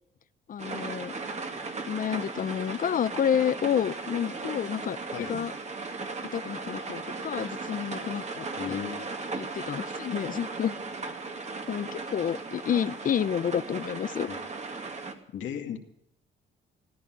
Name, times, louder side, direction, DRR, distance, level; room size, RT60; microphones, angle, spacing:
voice 1, 0.5-1.1 1.9-5.5 6.3-8.8 9.4-10.7 11.7-14.3, left 9 dB, 45° left, 19 dB, 0.6 m, -29 dB
sound 1, 0.6-15.1, right 3 dB, 35° right, 2.2 m, -37 dB
voice 2, 8.6-9.4 14.3-14.4 15.3-15.8, left 9 dB, 75° left, 4 dB, 2.3 m, -36 dB
14.5 x 13.5 x 6.0 m, 0.75 s
cardioid pair, 90°, 20 cm